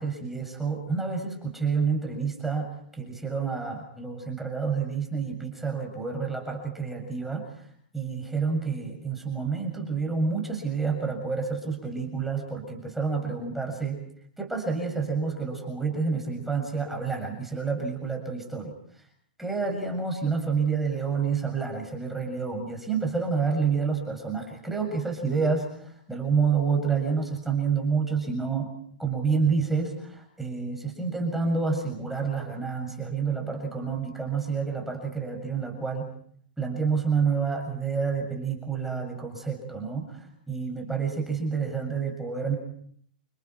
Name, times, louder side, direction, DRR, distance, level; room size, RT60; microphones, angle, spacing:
voice 1, 0.0-2.7 3.0-7.5 7.9-14.0 14.4-18.7 19.4-28.7 29.0-36.0 36.6-42.5, right 5 dB, 5° right, 2 dB, 7.0 m, -28 dB
29.5 x 29.0 x 4.6 m, 0.64 s
hypercardioid pair, 110°, 5 cm